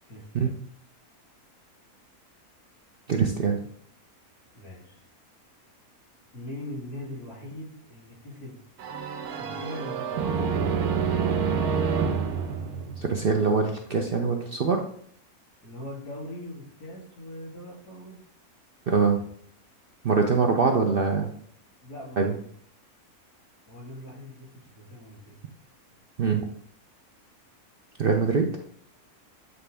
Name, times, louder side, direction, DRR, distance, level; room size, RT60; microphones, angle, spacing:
voice 1, 0.1-0.6 4.5-5.0 6.3-8.6 9.2-10.3 15.6-18.2 21.8-22.5 23.7-25.4, left 1 dB, 80° left, -4 dB, 3.5 m, -41 dB
voice 2, 3.1-3.6 13.0-14.8 18.9-19.2 20.0-21.3 22.2-22.3 26.2-26.4 28.0-28.5, right 5 dB, 60° right, 3 dB, 0.6 m, -23 dB
sound 1, 8.8-13.6, right 6 dB, 85° right, 1.3 m, -27 dB
8.2 x 3.9 x 3.4 m, 0.62 s
omnidirectional pair, 1.6 m